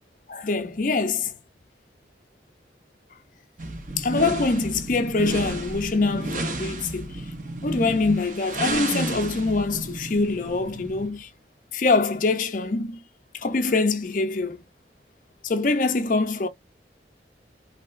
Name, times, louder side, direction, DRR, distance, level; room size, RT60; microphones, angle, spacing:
voice 1, 0.3-1.3 4.0-7.3 7.6-11.3 11.7-13.0 13.3-14.6 15.4-16.5, left 3 dB, 45° left, 0.5 m, -24 dB
sound 1, 3.6-11.2, right 2 dB, 45° right, 0.9 m, -32 dB
3.2 x 2.8 x 2.5 m
head